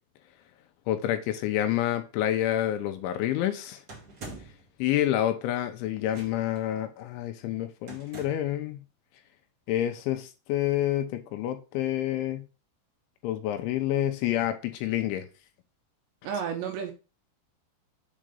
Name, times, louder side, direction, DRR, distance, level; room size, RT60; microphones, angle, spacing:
voice 1, 0.9-3.8 4.8-8.8 9.7-12.4 13.2-15.3, left 12 dB, 80° left, 3.0 m, -28 dB
sound 1, 3.9-4.7 6.1-6.6 7.9-8.6, right 2 dB, 45° right, 1.3 m, -44 dB
voice 2, 16.2-16.9, right 7 dB, 80° right, 2.7 m, -31 dB
7.5 x 3.9 x 5.1 m
omnidirectional pair, 5.6 m